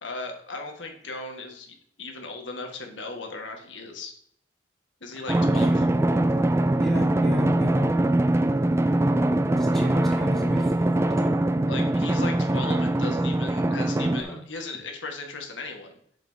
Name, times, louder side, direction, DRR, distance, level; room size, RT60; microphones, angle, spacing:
voice 1, 0.0-4.1 5.0-5.9 11.7-15.9, left 3 dB, 85° left, 3 dB, 1.6 m, -37 dB
voice 2, 5.3-5.7 6.8-7.9 9.6-10.9 11.2-11.3 13.0-13.1 14.0-14.4, equal, ahead, -3 dB, 2.2 m, -33 dB
Drum, 5.3-14.2, right 1 dB, 15° right, 0.3 m, -22 dB
7.6 x 7.2 x 2.8 m, 0.66 s
head